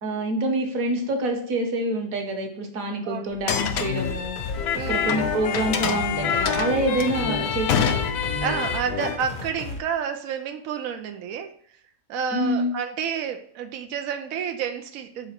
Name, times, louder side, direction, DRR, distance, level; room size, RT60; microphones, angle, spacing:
voice 1, 0.0-4.4 4.9-8.0 12.3-12.7, right 1 dB, 50° right, 3 dB, 1.4 m, -26 dB
sound 1, 3.3-5.2 5.5-8.6, left 7 dB, 70° left, 0.8 m, -27 dB
sound 2, 3.5-9.2, left 7 dB, 85° left, 1.5 m, -28 dB
sound 3, 3.6-9.8, left 3 dB, 40° left, 0.7 m, -35 dB
voice 2, 4.7-5.2 8.4-11.5 12.1-15.3, right 7 dB, 80° right, 6 dB, 0.7 m, -30 dB
6.0 x 4.0 x 4.3 m, 0.65 s
omnidirectional pair, 2.1 m